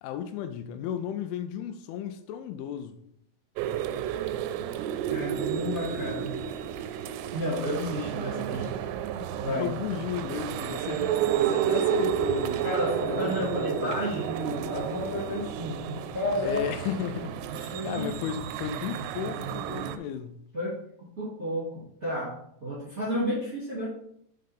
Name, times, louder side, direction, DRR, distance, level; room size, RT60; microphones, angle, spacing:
voice 1, 0.0-3.0 9.5-12.6 13.1-13.9 16.4-20.4, left 9 dB, 85° left, 3.0 m, -34 dB
sound 1, 3.6-20.0, right 10 dB, 85° right, 3.1 m, -31 dB
voice 2, 5.1-6.3 7.3-8.7 9.4-9.7 12.6-16.6 17.5-18.1 20.5-23.9, left 1 dB, 30° right, 1.7 m, -32 dB
7.5 x 5.8 x 3.6 m
omnidirectional pair, 5.5 m